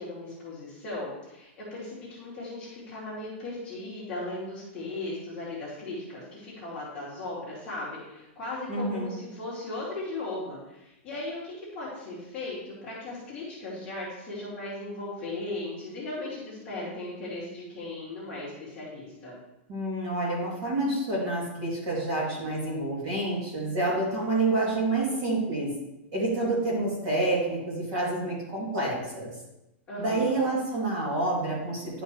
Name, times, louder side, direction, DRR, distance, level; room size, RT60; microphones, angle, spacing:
voice 1, 0.0-19.4 29.9-30.4, left 2 dB, 15° left, -9 dB, 2.3 m, -37 dB
voice 2, 8.7-9.1 19.7-25.7 26.1-29.3 30.0-32.0, right 2 dB, 35° right, -5 dB, 2.7 m, -28 dB
11.0 x 5.1 x 3.2 m, 0.90 s
supercardioid pair, 180°, 7 cm